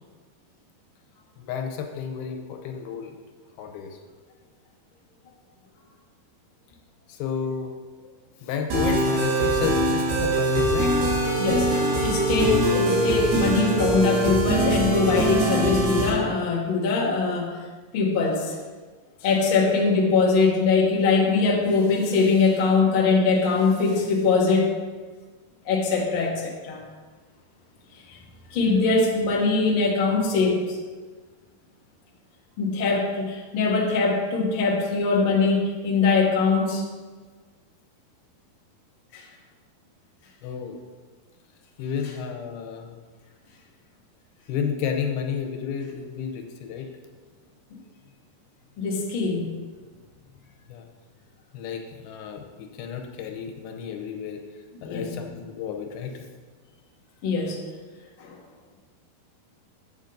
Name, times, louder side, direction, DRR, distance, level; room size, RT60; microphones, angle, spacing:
voice 1, 1.4-3.2 3.6-4.0 7.1-7.7 8.4-10.9 40.4-40.8 41.8-43.0 44.5-46.9 50.7-50.9 51.5-54.4 54.8-56.2 57.4-57.5, left 7 dB, 80° left, 4 dB, 2.7 m, -31 dB
sound 1, 8.7-16.1, right 1 dB, 85° right, 4.1 m, -23 dB
voice 2, 11.4-17.5 17.9-18.5 19.2-24.7 25.6-26.8 28.5-30.6 32.6-36.8 48.8-49.5 54.9-55.2 57.2-57.6 58.2-58.3, left 4 dB, 55° left, -3 dB, 1.5 m, -22 dB
9.1 x 7.2 x 3.9 m, 1.4 s
omnidirectional pair, 4.4 m